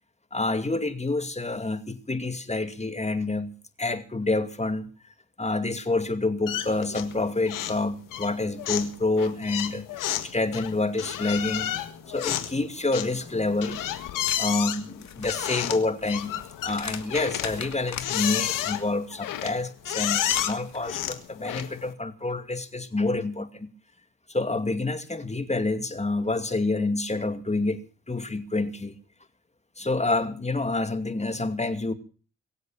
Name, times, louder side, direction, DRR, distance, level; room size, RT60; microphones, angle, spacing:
voice 1, 0.3-3.5 3.8-4.9 5.4-9.9 10.2-16.3 16.6-23.7 24.3-29.0 29.8-31.9, left 2 dB, 20° left, 2.5 m, -28 dB
sound 1, 6.5-7.2 7.5-7.8 8.1-21.9, left 11 dB, 85° left, 1.8 m, -31 dB
sound 2, 14.2-14.5 14.9-18.1 20.0-21.1, left 7 dB, 60° left, 2.6 m, -39 dB
23.5 x 8.0 x 7.3 m
supercardioid pair, 50°, 31 cm